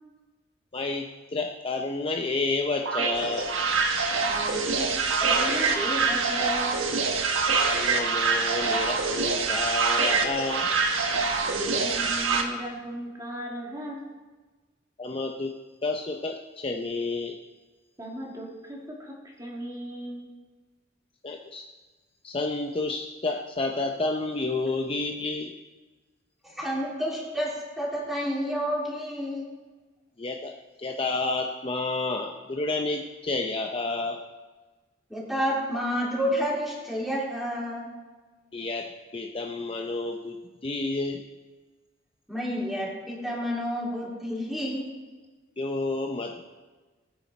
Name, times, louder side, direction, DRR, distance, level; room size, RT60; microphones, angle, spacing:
voice 1, 0.7-3.5 7.8-10.7 15.0-15.5 15.8-17.3 21.2-21.7 22.2-25.5 30.2-30.5 30.8-34.2 38.5-40.4 40.6-41.2 45.6-46.5, left 3 dB, 30° left, 3 dB, 0.6 m, -30 dB
sound 1, 2.9-12.4, right 4 dB, 85° right, 1.4 m, -25 dB
voice 2, 4.3-4.9 5.2-6.9 11.5-14.1 18.0-19.1 19.4-20.3, right 1 dB, 20° right, -2 dB, 2.4 m, -36 dB
voice 3, 26.4-29.5 35.1-37.9 42.3-44.8, equal, ahead, -5 dB, 3.5 m, -29 dB
19.0 x 9.3 x 4.2 m, 1.3 s
head